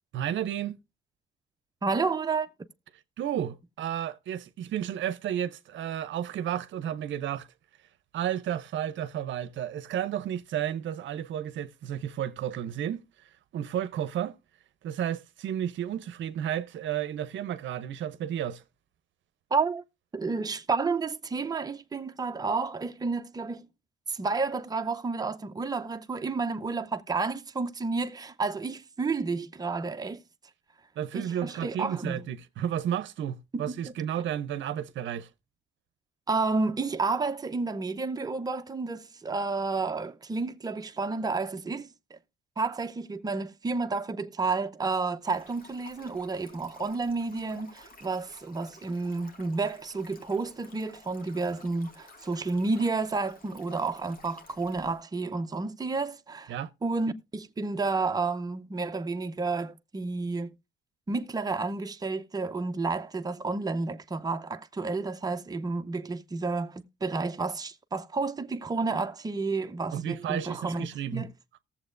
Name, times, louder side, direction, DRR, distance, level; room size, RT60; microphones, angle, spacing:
voice 1, 0.1-0.8 3.2-7.5 8.1-13.0 13.5-14.4 14.8-18.6 31.0-35.3 56.5-56.7 69.9-71.3, right 10 dB, 70° right, 0.7 m, -32 dB
voice 2, 1.8-2.5 19.5-19.8 20.1-23.7 24.1-30.2 31.1-32.2 33.5-33.8 36.3-41.9 42.6-56.5 56.8-60.5 61.1-70.9 71.1-71.3, right 3 dB, 20° right, 0.7 m, -31 dB
Stream, 45.2-55.0, left 2 dB, 45° left, 1.9 m, -53 dB
18.5 x 7.2 x 2.5 m
cardioid pair, 90°, 20 cm